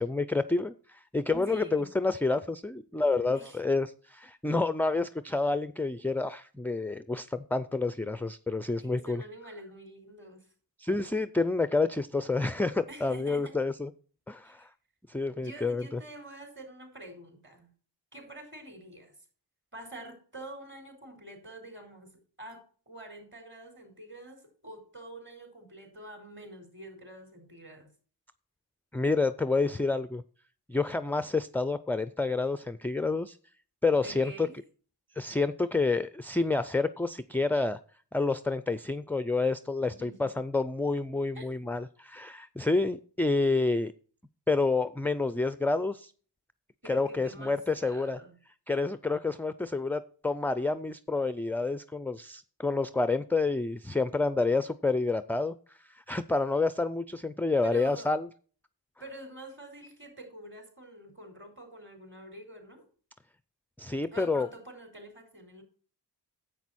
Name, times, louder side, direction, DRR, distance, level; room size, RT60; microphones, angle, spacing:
voice 1, 0.0-9.2 10.8-13.9 14.3-14.7 15.1-16.0 28.9-30.2 30.7-33.4 33.8-34.5 35.2-37.8 38.1-43.9 44.5-46.1 46.8-48.2 48.7-55.5 55.9-58.3 63.8-64.5, left 3 dB, 5° left, 0.3 m, -29 dB
voice 2, 1.5-1.9 3.3-3.6 8.8-10.5 12.9-13.6 14.4-14.7 15.1-17.7 18.1-19.1 19.7-27.9 34.0-34.6 39.8-40.3 41.3-41.6 46.8-48.3 57.6-58.1 59.0-62.8 64.1-65.6, right 1 dB, 25° right, 4.3 m, -46 dB
10.5 x 8.2 x 4.2 m
wide cardioid pair, 115°, 42 cm